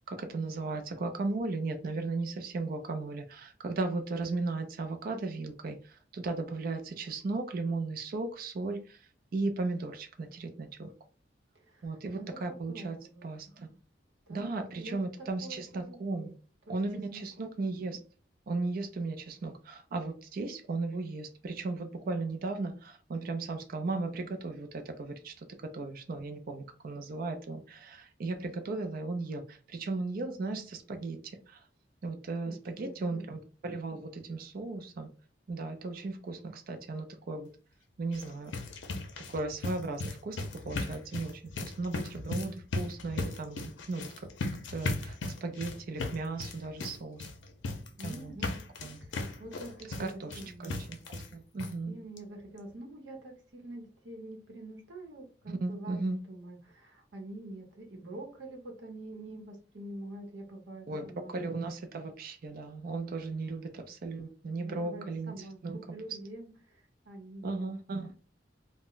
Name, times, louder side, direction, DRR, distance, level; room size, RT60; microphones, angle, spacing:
voice 1, 0.1-10.9 11.8-13.0 13.2-13.7 14.3-16.3 16.7-18.0 18.5-31.2 31.5-31.6 32.0-35.1 35.5-37.5 38.0-38.5 39.3-40.4 40.7-44.1 44.7-47.3 48.0-48.3 48.8-49.0 50.0-52.0 55.5-56.2 60.9-65.8 67.4-68.1, right 3 dB, 50° right, 0.4 m, -36 dB
voice 2, 11.6-13.3 13.7-13.8 14.3-14.5 14.8-16.4 16.9-17.5 32.4-33.2 48.0-48.6 49.0-50.8 51.8-61.3 64.5-67.7, right 1 dB, 80° right, 0.8 m, -46 dB
sound 1, 38.0-51.3 51.6-51.7 52.2-52.3 52.6-52.7, left 2 dB, 85° left, 0.5 m, -37 dB
2.1 x 2.0 x 3.7 m
head